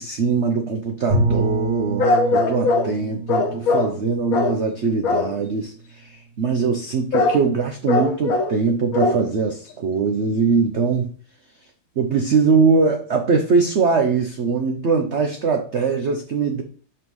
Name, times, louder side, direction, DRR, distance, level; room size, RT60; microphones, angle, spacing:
voice 1, 0.0-11.2 12.0-16.6, right 4 dB, 85° right, 5 dB, 0.6 m, -21 dB
Bowed string instrument, 1.1-5.9, right 2 dB, 65° right, 3.8 m, -27 dB
sound 1, 2.0-2.9 3.3-4.0 4.3-4.6 5.0-5.4 7.1-7.4 7.9-8.6 8.9-9.3 9.7-9.8, left 3 dB, 55° left, 1.1 m, -20 dB
5.7 x 5.3 x 3.1 m, 0.41 s
omnidirectional pair, 2.1 m